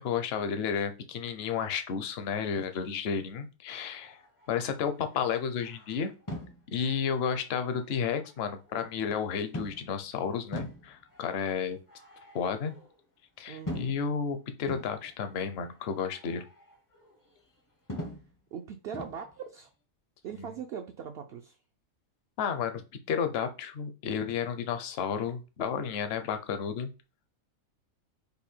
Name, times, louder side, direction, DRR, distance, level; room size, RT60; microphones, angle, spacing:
voice 1, 0.0-4.2 4.5-6.1 6.7-11.8 12.3-12.7 13.4-16.4 20.3-20.5 22.4-26.9, left 7 dB, 55° left, 0.8 m, -32 dB
sound 1, 3.7-8.9 9.5-10.1 10.5-13.0 13.7-14.2 14.7-17.6 17.9-18.3 18.9-19.3, equal, 25° left, 0.4 m, -44 dB
voice 2, 13.5-13.9 18.5-19.7 20.2-21.6, right 7 dB, 65° right, 0.6 m, -40 dB
5.4 x 2.2 x 4.3 m
omnidirectional pair, 1.5 m